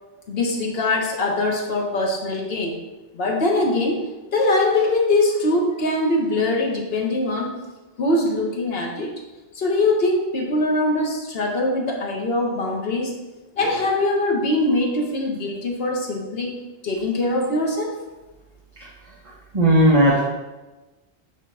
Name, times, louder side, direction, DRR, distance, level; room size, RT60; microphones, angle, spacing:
voice 1, 0.3-2.8 3.1-4.0 4.3-7.5 8.0-9.1 9.5-13.1 13.6-18.0, left 2 dB, 60° left, -1 dB, 1.3 m, -22 dB
voice 2, 19.5-20.2, right 1 dB, 30° right, -5 dB, 1.1 m, -15 dB
7.4 x 3.0 x 5.5 m, 1.1 s
omnidirectional pair, 1.2 m